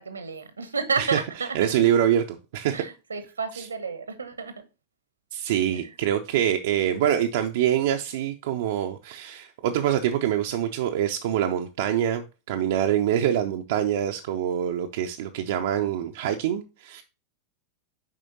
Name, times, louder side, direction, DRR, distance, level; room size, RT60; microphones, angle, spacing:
voice 1, 0.0-1.6 2.7-4.5 5.7-5.9, right 5 dB, 75° right, 1.0 m, -31 dB
voice 2, 1.5-2.8 3.5-3.7 5.3-17.0, right 10 dB, 55° right, 0.5 m, -25 dB
7.3 x 4.9 x 2.8 m
figure-of-eight pair, 90°, 0 cm